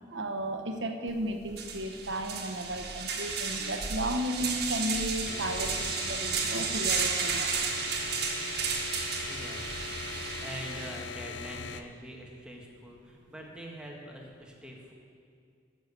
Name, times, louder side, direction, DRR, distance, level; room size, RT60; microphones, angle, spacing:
voice 1, 0.1-7.5, right 1 dB, 85° right, 5 dB, 1.1 m, -34 dB
sound 1, 1.1-1.2 1.5-11.1, right 5 dB, 60° right, 1.5 m, -33 dB
sound 2, 5.3-11.8, left 5 dB, 85° left, 0.6 m, -40 dB
voice 2, 9.2-14.9, right 1 dB, 5° right, -1 dB, 1.5 m, -45 dB
14.0 x 6.6 x 6.9 m, 2.2 s
head